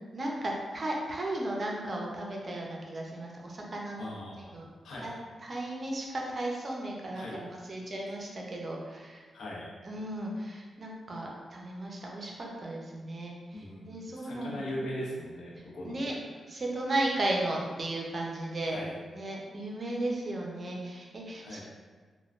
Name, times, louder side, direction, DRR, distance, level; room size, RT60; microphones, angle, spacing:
voice 1, 0.1-4.1 4.4-4.7 5.0-5.1 5.4-9.2 9.8-14.7 15.8-16.1 16.5-18.8 19.1-21.6, right 1 dB, 45° right, -1 dB, 0.6 m, -35 dB
voice 2, 4.0-4.6 4.8-5.1 7.1-7.4 9.3-9.7 13.5-13.9 14.1-16.2 18.7-19.0 21.4-21.6, left 1 dB, 75° left, -4 dB, 0.6 m, -39 dB
3.2 x 2.2 x 2.4 m, 1.4 s
cardioid pair, 65°, 0 cm